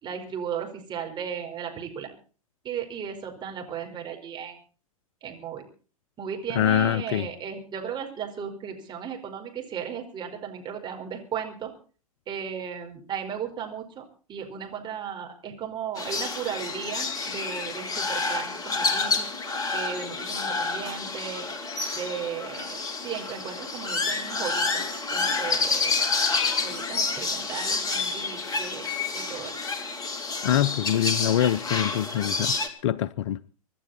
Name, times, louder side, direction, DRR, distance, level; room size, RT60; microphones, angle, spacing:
voice 1, 0.0-2.1 2.6-4.6 5.2-5.6 6.2-11.7 12.3-19.3 19.7-21.5 21.9-22.8 23.0-25.9 26.6-29.6, right 8 dB, 25° right, 4.8 m, -36 dB
voice 2, 6.5-7.3 30.4-32.6 32.8-33.4, left 11 dB, 55° left, 0.7 m, -24 dB
sound 1, 16.0-32.7, left 4 dB, 20° left, 3.0 m, -29 dB
25.5 x 12.0 x 4.3 m
figure-of-eight pair, 105°, 19 cm